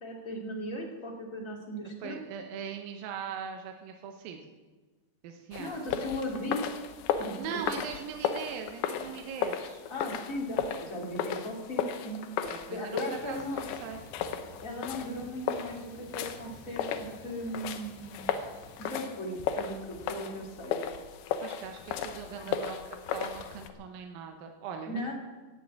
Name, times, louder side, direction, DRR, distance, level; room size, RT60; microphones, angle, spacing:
voice 1, 0.0-2.2 5.6-6.6 7.2-7.6 9.9-12.2 12.7-13.6 14.6-18.2 18.9-20.8 22.3-22.5 24.9-25.1, left 1 dB, 25° left, -1 dB, 2.1 m, -37 dB
voice 2, 2.0-4.4 5.2-5.9 7.4-9.8 12.5-14.0 21.4-22.8 23.1-25.1, right 7 dB, 70° right, 4 dB, 2.3 m, -40 dB
sound 1, 5.5-23.7, left 8 dB, 75° left, 2.4 m, -35 dB
sound 2, 13.1-19.0, left 1 dB, 55° left, 3.3 m, -52 dB
17.5 x 7.7 x 8.6 m, 1.3 s
omnidirectional pair, 5.2 m